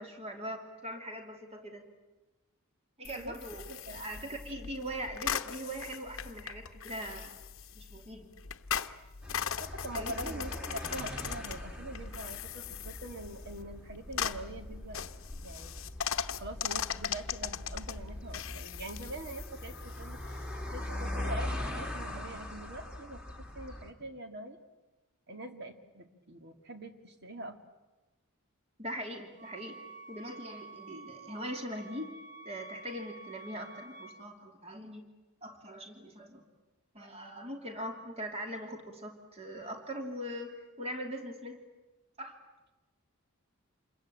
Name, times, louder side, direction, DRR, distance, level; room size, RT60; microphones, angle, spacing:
voice 1, 0.0-1.9 3.0-7.4 7.8-8.4 9.9-10.4 28.8-29.8 30.1-32.2 32.4-35.0 35.4-36.4 36.9-41.6 42.2-42.4, equal, 30° right, 4 dB, 2.8 m, -41 dB
sound 1, 3.0-21.3, left 8 dB, 65° left, 0.9 m, -40 dB
voice 2, 3.7-4.4 9.6-15.1 15.4-15.7 16.4-20.2 20.7-23.2 23.6-24.6 25.3-27.6, right 1 dB, 50° right, 6 dB, 2.2 m, -44 dB
sound 2, 9.2-23.9, left 1 dB, 5° right, 2.2 m, -41 dB
Wind instrument woodwind instrument, 29.4-34.3, right 3 dB, 35° left, 1.4 m, -50 dB
27.5 x 22.0 x 8.8 m, 1.1 s
head